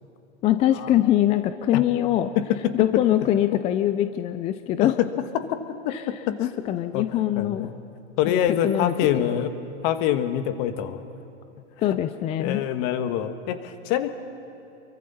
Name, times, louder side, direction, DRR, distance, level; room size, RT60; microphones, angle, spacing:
voice 1, 0.4-2.3 2.7-5.0 5.9-7.7 8.3-9.4 11.8-12.6, left 12 dB, 20° left, 10 dB, 0.4 m, -23 dB
voice 2, 5.8-6.3 6.9-7.0 7.4-7.7 8.2-9.5 9.8-11.0 11.9-12.0 12.4-14.1, left 10 dB, 45° left, 9 dB, 1.5 m, -25 dB
29.0 x 23.5 x 4.2 m, 2.9 s
hypercardioid pair, 125°, 36 cm